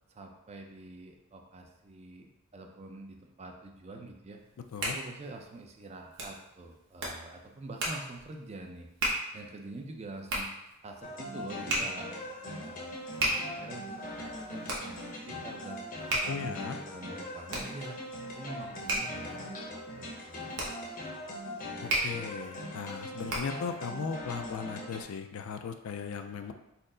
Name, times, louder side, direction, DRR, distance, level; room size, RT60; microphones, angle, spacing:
voice 1, 0.1-4.4 4.8-8.9 9.3-10.5 10.8-12.1 12.4-15.0 15.3-15.8 16.2-18.0 18.4-20.4 20.8-20.9, right 2 dB, 30° right, 3 dB, 0.4 m, -46 dB
Hands, 4.4-23.7, right 1 dB, 60° right, 0.9 m, -37 dB
sound 1, 11.0-25.0, left 1 dB, 40° left, 0.7 m, -41 dB
voice 2, 16.3-16.8 21.8-26.5, left 6 dB, 75° left, 7 dB, 0.4 m, -37 dB
4.3 x 2.0 x 3.7 m, 0.89 s
head